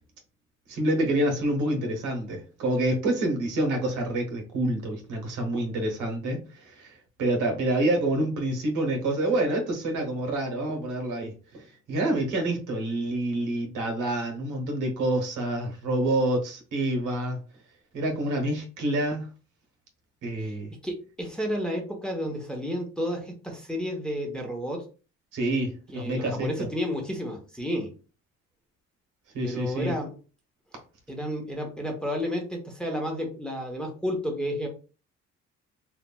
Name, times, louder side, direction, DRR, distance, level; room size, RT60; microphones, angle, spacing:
voice 1, 0.7-17.4 17.9-19.3 20.2-20.7 25.3-26.7 29.3-29.9, right 1 dB, 85° right, 1.0 m, -27 dB
voice 2, 20.8-24.9 25.9-27.9 29.4-30.2 31.1-34.7, equal, 5° left, 0.8 m, -31 dB
3.2 x 2.4 x 2.2 m
cardioid pair, 90°, 30 cm